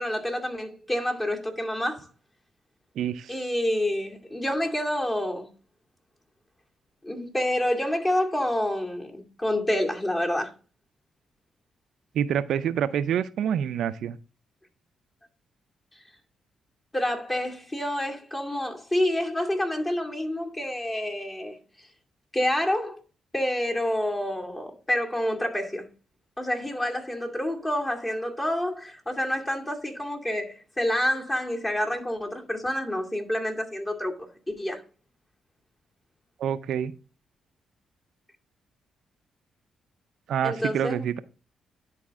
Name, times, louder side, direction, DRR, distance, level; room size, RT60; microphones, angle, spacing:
voice 1, 0.0-2.1 3.3-5.5 7.0-10.5 16.9-21.6 22.3-23.0 23.3-25.9 26.4-34.8 40.4-41.2, left 1 dB, 25° left, 2.4 m, -28 dB
voice 2, 3.0-3.3 12.1-14.2 36.4-36.9 40.3-41.2, right 9 dB, 75° right, 0.4 m, -27 dB
10.5 x 4.2 x 3.6 m
supercardioid pair, 55°, 0 cm